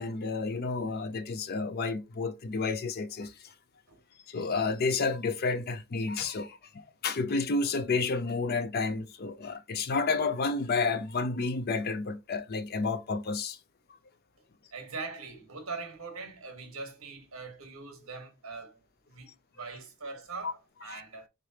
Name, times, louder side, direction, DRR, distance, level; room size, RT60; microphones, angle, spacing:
voice 1, 0.0-3.3 4.3-13.6 20.9-21.0, left 4 dB, 45° left, 0.5 m, -30 dB
voice 2, 14.7-21.3, right 4 dB, 65° right, 1.3 m, -42 dB
3.7 x 3.3 x 2.8 m
head